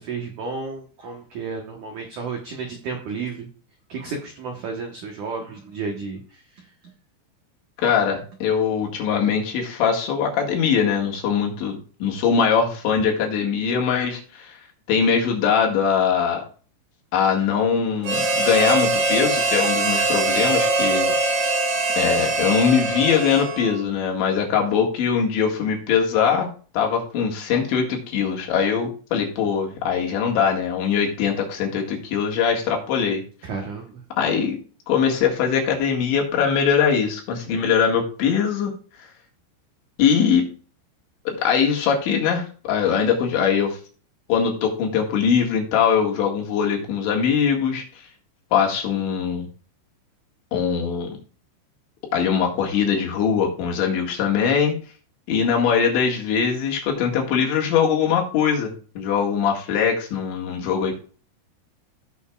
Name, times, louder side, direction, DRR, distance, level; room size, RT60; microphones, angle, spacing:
voice 1, 0.0-3.5 3.9-6.2 6.6-6.7 33.4-34.0, right 4 dB, 85° right, 2 dB, 1.7 m, -32 dB
voice 2, 7.8-14.5 14.9-16.4 17.1-21.1 22.0-26.5 26.7-33.2 34.2-34.6 34.9-38.7 40.0-40.5 41.3-43.8 44.3-47.8 48.5-49.5 50.5-51.1 52.1-54.7 55.3-61.0, left 7 dB, 70° left, 0 dB, 4.0 m, -21 dB
Harmonica, 18.0-23.8, right 2 dB, 65° right, 2.4 m, -22 dB
16.0 x 7.1 x 2.4 m, 0.40 s
omnidirectional pair, 5.5 m